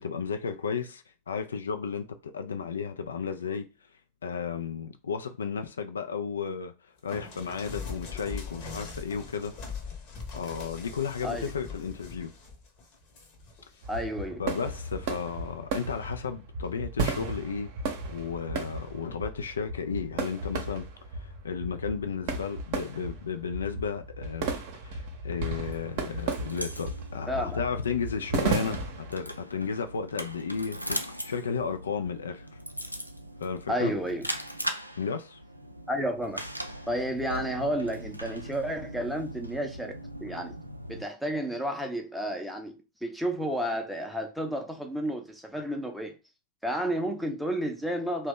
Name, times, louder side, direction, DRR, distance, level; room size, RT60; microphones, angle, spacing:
voice 1, 0.0-3.7 4.2-6.7 7.0-9.7 10.3-12.3 14.4-17.7 18.1-20.9 21.1-24.5 24.8-31.0 31.2-32.6 33.4-33.9 35.0-35.4, left 6 dB, 70° left, 0.3 m, -33 dB
sound 1, 7.1-14.1 14.5-15.2 16.0-16.3, left 4 dB, 40° left, 0.9 m, -42 dB
sound 2, 13.8-29.2, right 3 dB, 45° right, 0.7 m, -35 dB
voice 2, 13.9-14.4 27.3-27.6 33.7-34.3 35.9-36.4 36.9-39.9 40.2-40.6 40.9-42.7 43.0-46.2 46.6-48.3, equal, ahead, 0.6 m, -31 dB
sound 3, 25.6-41.0, equal, 90° right, 0.3 m, -40 dB
2.8 x 2.1 x 3.5 m
figure-of-eight pair, 90°, 0 cm